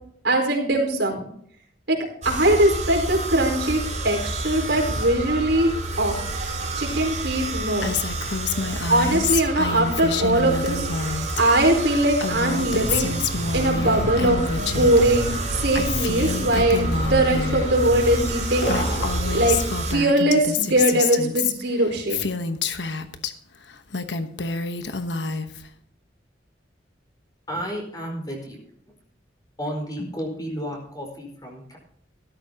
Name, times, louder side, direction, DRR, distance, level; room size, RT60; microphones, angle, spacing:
voice 1, 0.2-1.2 1.9-2.0 2.2-5.7 6.0-6.2 6.7-7.9 8.9-13.1 13.5-18.8 19.3-19.6 19.9-22.3, right 1 dB, 80° right, 1 dB, 4.5 m, -21 dB
sound 1, 2.2-19.9, right 2 dB, 40° right, 4.4 m, -30 dB
Female speech woman speaking, 7.8-11.4 11.7-15.0 15.3-17.7 18.3-18.4 18.6-23.3 23.7-25.7, left 5 dB, 75° left, 1.1 m, -28 dB
sound 2, 12.6-19.6, equal, 50° left, 5.8 m, -31 dB
voice 2, 27.5-28.6 29.6-31.8, equal, 20° left, 0 dB, 4.6 m, -32 dB
16.0 x 13.0 x 2.9 m, 0.65 s
head